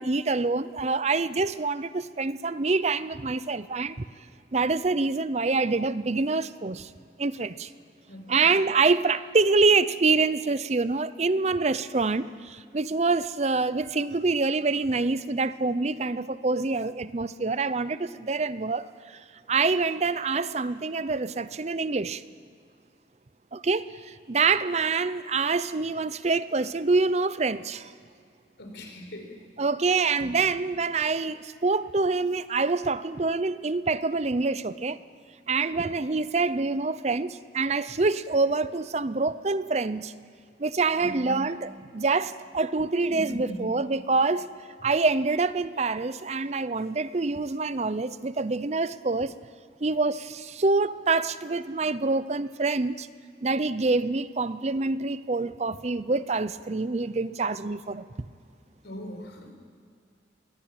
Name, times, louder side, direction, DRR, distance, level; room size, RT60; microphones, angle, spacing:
voice 1, 0.0-4.0 4.5-6.9 7.2-7.7 8.3-19.2 19.5-22.2 23.5-27.9 29.6-35.0 35.5-40.1 40.6-44.5 44.8-49.3 49.8-53.1 53.4-58.0, right 3 dB, 40° right, 15 dB, 0.6 m, -26 dB
voice 2, 8.1-8.5 28.6-29.4 30.2-30.3 41.0-41.5 43.1-43.6 58.8-59.5, equal, 85° left, 4 dB, 4.6 m, -39 dB
22.5 x 17.5 x 8.8 m, 2.2 s
head